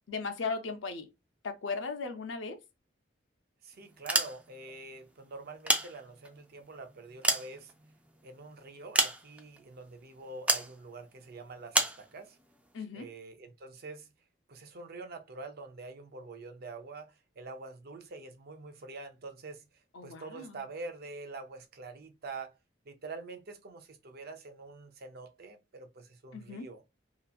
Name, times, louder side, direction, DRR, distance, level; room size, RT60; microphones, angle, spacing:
voice 1, 0.1-1.1 1.4-2.6 12.7-13.1 19.9-20.6 26.3-26.7, left 4 dB, 90° left, 0.6 m, -37 dB
voice 2, 3.6-7.7 8.2-12.4 12.9-14.1 14.5-19.6 20.0-22.5 22.9-26.8, right 3 dB, 55° right, 0.5 m, -45 dB
sound 1, 3.9-4.7 5.4-6.4 6.9-8.2 8.9-9.6 10.5-10.7 11.7-12.0, right 1 dB, 5° right, 0.3 m, -29 dB
2.8 x 2.5 x 2.3 m
head